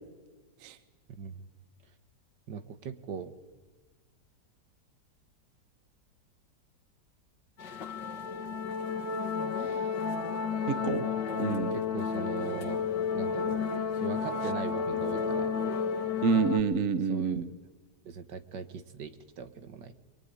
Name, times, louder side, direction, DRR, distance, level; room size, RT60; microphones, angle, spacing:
voice 1, 2.5-3.3 11.7-12.9 13.1-13.6 13.9-15.6 17.1-17.5 18.0-19.9, right 6 dB, 75° right, 11 dB, 2.0 m, -40 dB
sound 1, 7.6-16.6, left 6 dB, 75° left, 2.1 m, -32 dB
voice 2, 10.7-11.1 11.4-11.7 16.2-17.5, right 5 dB, 50° right, 13 dB, 1.4 m, -28 dB
24.0 x 23.5 x 9.8 m, 1.3 s
omnidirectional pair, 1.9 m